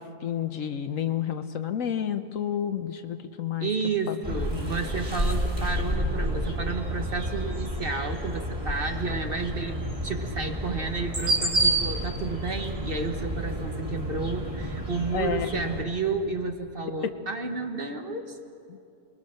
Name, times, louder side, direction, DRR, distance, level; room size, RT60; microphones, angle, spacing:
voice 1, 0.0-3.7 4.1-4.7 15.1-15.8 17.0-17.1 18.7-18.8, left 9 dB, 60° left, 9 dB, 1.1 m, -31 dB
voice 2, 3.6-9.8 10.0-18.4, right 4 dB, 40° right, 5 dB, 1.4 m, -31 dB
sound 1, 4.2-15.8, right 1 dB, 20° right, 2.6 m, -30 dB
28.5 x 21.0 x 6.5 m, 2.7 s
omnidirectional pair, 1.6 m